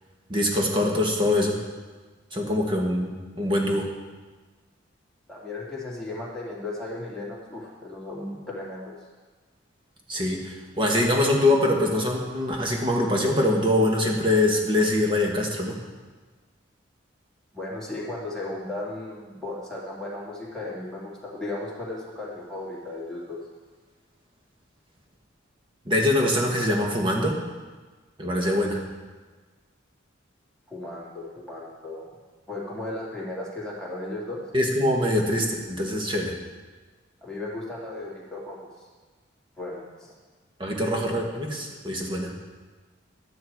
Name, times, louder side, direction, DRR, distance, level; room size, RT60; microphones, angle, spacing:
voice 1, 0.3-1.6 2.3-3.9 10.1-15.8 25.8-27.4 28.2-28.8 34.5-36.3 40.6-42.3, left 1 dB, 25° right, 0 dB, 1.6 m, -23 dB
voice 2, 5.3-8.9 17.5-23.4 30.7-32.1 32.5-34.4 37.2-38.9 39.6-40.1, left 2 dB, 5° left, -7 dB, 2.6 m, -35 dB
12.5 x 9.6 x 4.7 m, 1.3 s
head